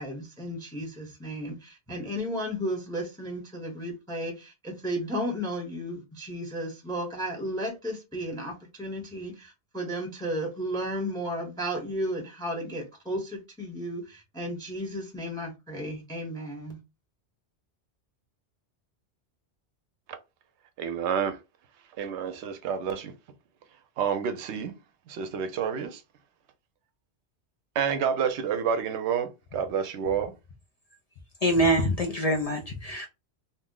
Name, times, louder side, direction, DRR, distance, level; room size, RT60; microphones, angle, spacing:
voice 1, 0.0-16.8, equal, 5° left, 0.6 m, -34 dB
voice 2, 20.8-21.4 22.0-23.1 24.0-24.8 25.1-26.0 27.8-30.3, right 7 dB, 80° right, 0.9 m, -29 dB
voice 3, 31.4-33.1, right 1 dB, 55° left, 0.4 m, -24 dB
2.6 x 2.0 x 3.6 m
omnidirectional pair, 1.2 m